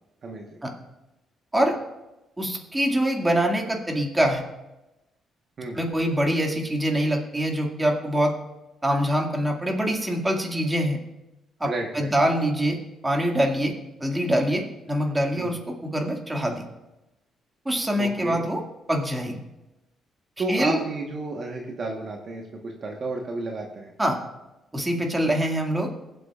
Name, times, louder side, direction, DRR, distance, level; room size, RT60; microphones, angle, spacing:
voice 1, 0.2-0.6 5.6-5.8 11.6-12.1 15.3-15.5 18.0-18.4 20.4-23.9, right 2 dB, 50° right, 1 dB, 1.3 m, -31 dB
voice 2, 2.4-4.4 5.7-8.3 8.8-11.0 11.6-11.7 11.9-12.8 13.0-13.7 14.0-16.6 17.7-18.6 18.9-19.4 20.5-20.8 24.0-24.2 24.7-25.9, equal, 15° right, 1 dB, 2.1 m, -24 dB
22.5 x 7.6 x 2.5 m, 0.99 s
cardioid pair, 90°, 0 cm